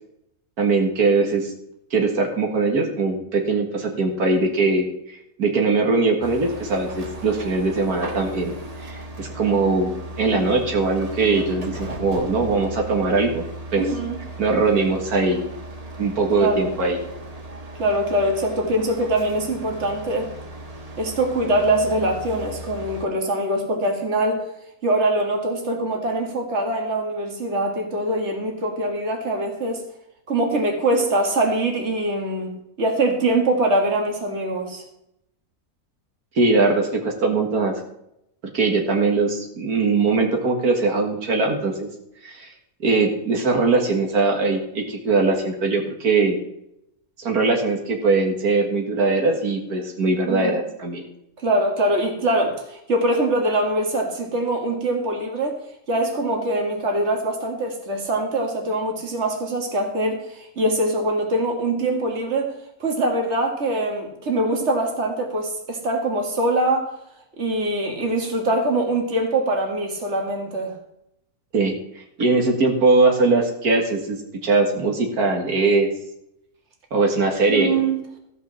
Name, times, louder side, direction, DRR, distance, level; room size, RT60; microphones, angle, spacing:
voice 1, 0.6-1.5 1.9-13.4 13.7-13.9 14.4-15.4 16.0-17.0 36.4-37.7 38.5-41.9 42.2-42.5 42.8-46.4 47.2-51.0 71.5-71.8 72.2-75.9 76.9-77.7, right 3 dB, 85° right, 2 dB, 2.2 m, -21 dB
sound 1, 6.2-23.1, right 2 dB, 25° right, 1.4 m, -36 dB
voice 2, 13.8-14.2 16.4-16.7 17.8-20.3 21.0-24.4 24.8-29.8 30.3-32.5 32.8-34.8 50.3-50.5 51.4-55.6 55.9-62.5 62.8-66.9 67.4-70.7 77.5-78.0, right 1 dB, 50° right, 2 dB, 2.3 m, -23 dB
14.5 x 5.6 x 7.1 m, 0.79 s
omnidirectional pair, 1.6 m